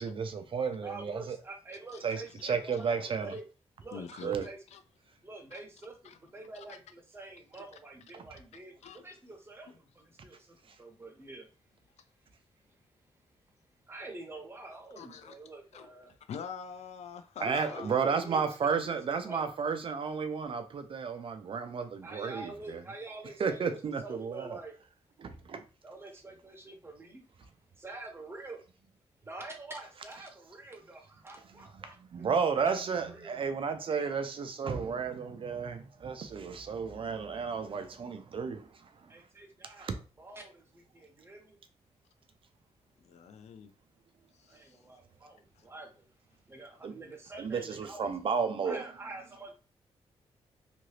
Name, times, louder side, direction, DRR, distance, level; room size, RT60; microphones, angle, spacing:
voice 1, 0.0-1.4 2.0-3.3 4.2-4.5 8.1-8.2 17.4-22.8 23.4-24.6 25.2-25.6 31.7-31.8 32.1-39.1 39.8-40.0 46.8-46.9 47.4-48.8, right 6 dB, 55° right, 0.5 m, -33 dB
voice 2, 0.8-3.4 3.8-4.6 5.2-11.5 13.9-16.1 17.4-19.0 19.2-19.5 22.0-24.8 25.8-27.2 27.8-28.6 29.2-32.8 33.1-34.1 39.1-39.9 40.2-41.6 44.5-46.1 46.5-48.1 48.6-49.5, right 2 dB, 20° right, 0.9 m, -47 dB
voice 3, 3.9-4.3 4.7-4.8 5.5-5.6 6.0-6.2 6.5-6.6 8.8-9.0 15.0-15.4 15.7-17.9 43.0-43.7 44.4-44.8 45.6-45.7, left 7 dB, 85° left, 0.4 m, -45 dB
2.8 x 2.6 x 3.1 m
cardioid pair, 105°, 11 cm